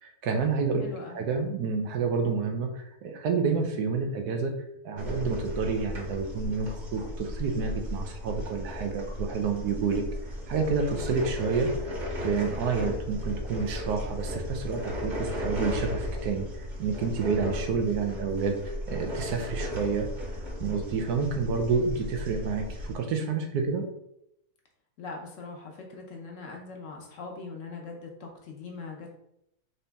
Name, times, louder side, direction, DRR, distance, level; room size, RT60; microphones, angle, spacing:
voice 1, 0.0-4.5 4.8-10.1 10.5-11.7 12.2-20.1 20.6-23.9, right 5 dB, 90° right, 4 dB, 1.2 m, -29 dB
voice 2, 0.8-1.2 25.0-29.1, left 3 dB, 60° left, 0 dB, 1.0 m, -41 dB
sound 1, 5.0-22.9, left 1 dB, 35° right, 0.9 m, -35 dB
4.1 x 2.7 x 3.4 m, 0.79 s
omnidirectional pair, 1.6 m